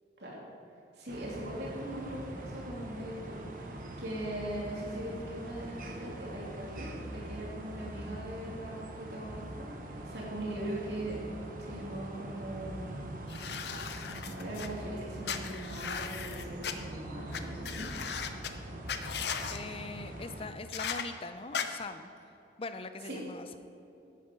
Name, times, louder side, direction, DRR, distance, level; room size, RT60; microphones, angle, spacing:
voice 1, 0.9-3.7 4.0-9.4 9.8-11.2 11.6-13.0 14.1-17.9 23.0-23.2, right 1 dB, 70° right, -5 dB, 2.9 m, -40 dB
sound 1, 1.1-20.5, right 1 dB, 50° right, 1.1 m, -43 dB
sound 2, 13.3-14.7 15.2-16.7 17.3-17.4 17.6-18.5 18.9-19.6 20.7-21.0 21.5-21.6, left 7 dB, 70° left, 0.7 m, -37 dB
voice 2, 19.5-22.1 22.6-23.6, left 3 dB, 30° left, 10 dB, 0.5 m, -42 dB
10.0 x 9.7 x 5.3 m, 2.9 s
head